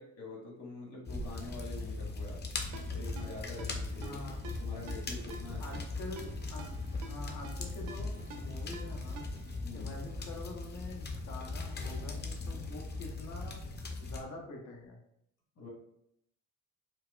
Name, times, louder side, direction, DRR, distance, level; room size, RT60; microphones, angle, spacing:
voice 1, 0.0-2.4 2.9-4.2 4.6-5.6 9.6-9.9 15.6-15.7, left 3 dB, 60° left, -2 dB, 1.3 m, -46 dB
sound 1, 1.1-14.2, left 3 dB, 35° left, 0.6 m, -39 dB
Ringtone, 2.7-9.6, right 3 dB, 90° right, 0.6 m, -51 dB
voice 2, 4.0-4.4 5.6-6.6 6.9-9.2 9.7-13.6 14.0-15.0, left 2 dB, 80° left, 1 dB, 0.9 m, -46 dB
4.6 x 2.2 x 2.3 m, 0.75 s
cardioid pair, 90°, 30 cm